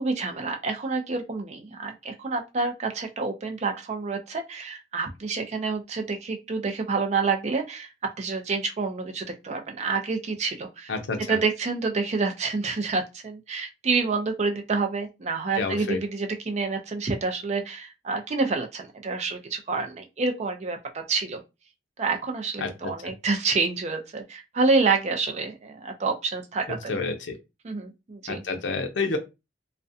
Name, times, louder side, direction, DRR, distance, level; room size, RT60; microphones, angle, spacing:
voice 1, 0.0-7.9 8.2-10.9 11.3-21.4 22.0-27.0 27.6-28.4, right 4 dB, 40° right, 0.4 m, -28 dB
voice 2, 10.9-11.4 15.6-16.0 22.6-22.9 26.7-27.3 28.3-29.2, left 3 dB, 85° left, 0.6 m, -29 dB
2.4 x 2.1 x 2.6 m
head